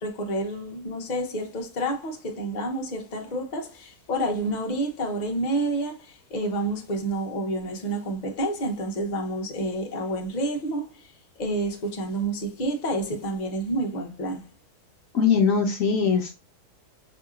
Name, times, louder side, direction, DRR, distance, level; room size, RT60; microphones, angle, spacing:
voice 1, 0.0-11.1 11.4-14.4, right 1 dB, 35° left, 0.8 m, -29 dB
voice 2, 15.1-16.4, left 6 dB, 65° left, 1.0 m, -21 dB
5.6 x 2.8 x 2.4 m
omnidirectional pair, 1.7 m